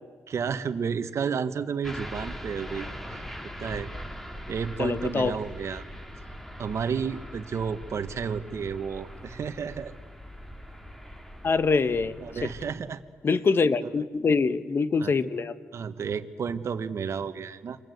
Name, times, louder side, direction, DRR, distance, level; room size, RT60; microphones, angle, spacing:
voice 1, 0.3-3.2 3.6-3.9 4.5-5.8 6.6-9.9 12.2-13.0 13.8-13.9 15.0-15.1 15.7-17.8, right 6 dB, 60° right, 10 dB, 1.4 m, -31 dB
sound 1, 1.8-12.8, equal, 5° left, 2.7 m, -41 dB
voice 2, 4.8-5.4 11.4-12.2 12.4-12.5 13.2-15.5, left 4 dB, 45° left, 12 dB, 1.4 m, -24 dB
29.5 x 24.0 x 8.1 m, 1.5 s
cardioid pair, 95°, 6 cm